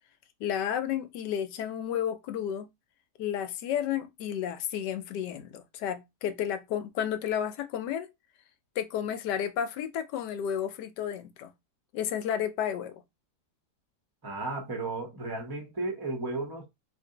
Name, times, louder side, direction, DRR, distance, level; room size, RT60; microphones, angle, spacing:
voice 1, 0.4-2.7 3.2-8.1 8.8-11.5 11.9-12.9, left 9 dB, 85° left, 1.2 m, -32 dB
voice 2, 14.2-16.7, right 2 dB, 15° right, 0.8 m, -34 dB
3.3 x 2.6 x 3.8 m
omnidirectional pair, 1.8 m